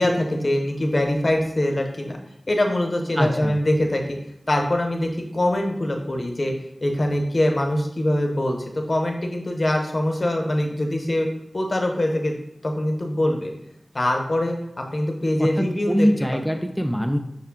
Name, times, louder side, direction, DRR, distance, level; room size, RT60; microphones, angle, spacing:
voice 1, 0.0-2.2 2.5-4.2 4.5-6.5 6.8-11.3 11.5-12.3 12.6-13.5 13.9-16.1 16.3-16.4, left 1 dB, 50° left, 2 dB, 0.8 m, -23 dB
voice 2, 3.2-3.6 15.4-17.2, equal, ahead, 4 dB, 0.3 m, -23 dB
6.3 x 2.2 x 3.6 m, 0.80 s
wide cardioid pair, 50°, 0 cm